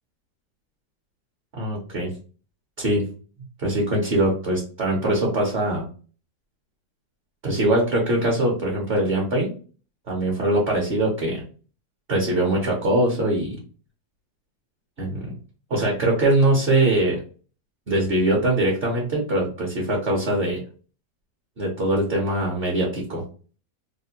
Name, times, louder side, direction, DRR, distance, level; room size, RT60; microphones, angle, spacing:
voice 1, 1.5-2.1 2.8-3.1 3.6-5.8 7.4-9.5 10.1-11.4 12.1-13.6 15.0-15.3 15.7-17.2 17.9-20.6 21.6-23.2, right 1 dB, 45° right, -1 dB, 0.8 m, -22 dB
3.3 x 2.2 x 2.7 m, 0.39 s
omnidirectional pair, 1.9 m